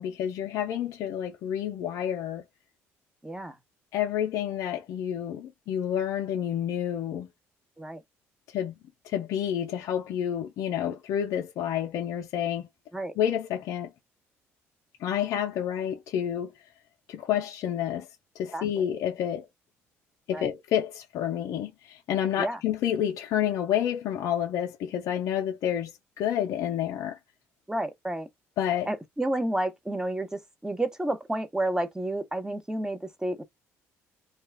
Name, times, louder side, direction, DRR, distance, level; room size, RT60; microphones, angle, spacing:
voice 1, 0.0-2.4 3.9-7.3 8.5-8.7 9.0-12.7 13.2-13.9 15.0-16.5 17.1-18.1 18.4-19.4 20.3-27.2 28.6-28.9, left 10 dB, 70° left, 0.5 m, -29 dB
voice 2, 3.2-3.6 7.8-8.0 12.9-13.1 18.5-18.6 20.3-20.5 22.4-22.6 27.7-28.3 28.9-33.4, right 1 dB, 10° right, 0.9 m, -30 dB
2.3 x 2.2 x 3.3 m
supercardioid pair, 80°, 6 cm